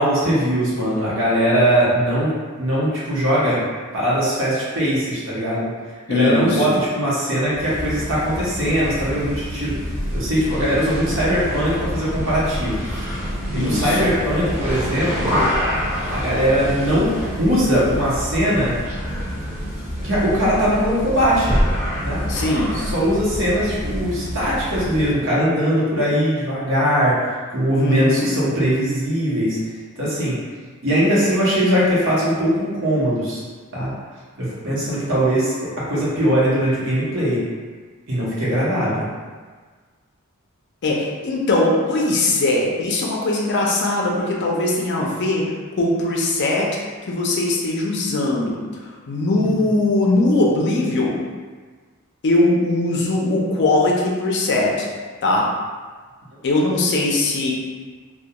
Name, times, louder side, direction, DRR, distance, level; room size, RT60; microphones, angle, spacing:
voice 1, 0.0-2.3 2.6-3.6 3.9-5.7 6.1-9.7 10.1-12.8 13.5-15.3 16.1-17.1 17.4-18.7 20.0-21.5 22.0-22.2 22.7-27.1 27.5-29.6 30.0-30.3 30.8-33.4 33.7-33.9 34.4-37.4 38.1-39.0 49.4-49.5, equal, 60° right, -8 dB, 0.9 m, -20 dB
voice 2, 6.1-6.8 13.5-14.0 22.3-22.8 27.7-28.3 40.8-45.4 45.8-46.7 47.1-51.2 52.2-54.9 55.2-55.5 56.4-57.5, left 2 dB, 55° left, -2 dB, 0.4 m, -20 dB
sound 1, 7.5-25.2, equal, 10° right, 0.7 m, -27 dB
2.2 x 2.2 x 2.8 m, 1.5 s
head